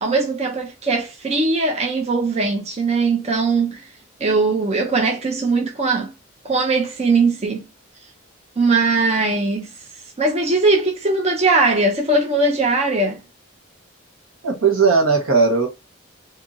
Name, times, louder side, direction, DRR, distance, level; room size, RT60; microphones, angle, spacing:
voice 1, 0.0-3.9 4.2-6.1 6.4-7.6 8.6-9.7 10.2-13.2, right 3 dB, 30° right, 0.5 m, -20 dB
voice 2, 14.4-15.7, right 4 dB, 75° right, 1.1 m, -17 dB
2.7 x 2.6 x 3.6 m
head